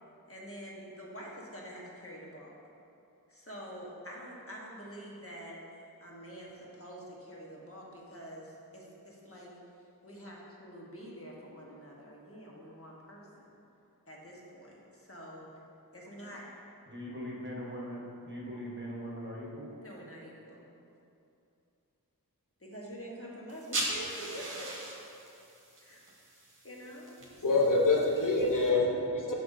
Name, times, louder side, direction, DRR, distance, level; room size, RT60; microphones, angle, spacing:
voice 1, 0.3-2.6 3.3-5.6 6.0-9.5 10.0-13.5 14.1-15.5 15.9-16.6 19.8-20.7 22.6-24.7 25.8-26.0 26.6-27.8, equal, 35° left, -3 dB, 1.2 m, -46 dB
voice 2, 16.9-19.7, equal, 30° right, -4 dB, 1.1 m, -40 dB
sound 1, 23.5-28.7, right 2 dB, 55° right, 1.0 m, -40 dB
voice 3, 27.4-29.3, left 3 dB, 55° left, -2 dB, 0.8 m, -26 dB
7.7 x 5.7 x 2.7 m, 2.7 s
wide cardioid pair, 40°, 37 cm